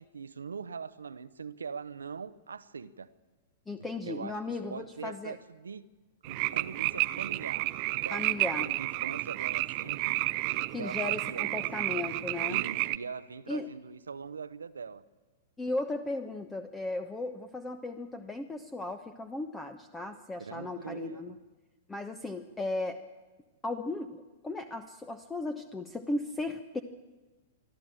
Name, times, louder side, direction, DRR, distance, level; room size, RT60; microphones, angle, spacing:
voice 1, 0.0-3.1 4.0-5.9 6.3-7.7 8.0-10.2 10.8-11.6 12.5-15.0 20.4-21.4, right 5 dB, 80° right, 0.8 m, -42 dB
voice 2, 3.7-5.3 8.1-8.7 10.7-12.6 13.5-13.7 15.6-21.3 21.9-23.0 23.6-26.8, left 2 dB, 10° left, 1.0 m, -36 dB
sound 1, 6.2-13.0, right 21 dB, 45° right, 0.6 m, -31 dB
24.0 x 13.5 x 8.9 m
figure-of-eight pair, 105°, 0 cm